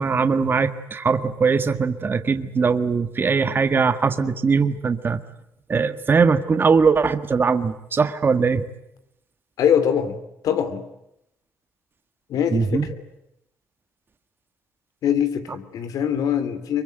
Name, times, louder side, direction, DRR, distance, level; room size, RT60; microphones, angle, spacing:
voice 1, 0.0-5.2 5.7-8.6 12.5-12.9, right 5 dB, 35° right, 10 dB, 1.6 m, -20 dB
voice 2, 9.6-10.8 12.3-13.0 15.0-16.8, left 8 dB, 75° left, 11 dB, 3.0 m, -23 dB
24.5 x 23.5 x 9.1 m, 0.85 s
cardioid pair, 95°, 6 cm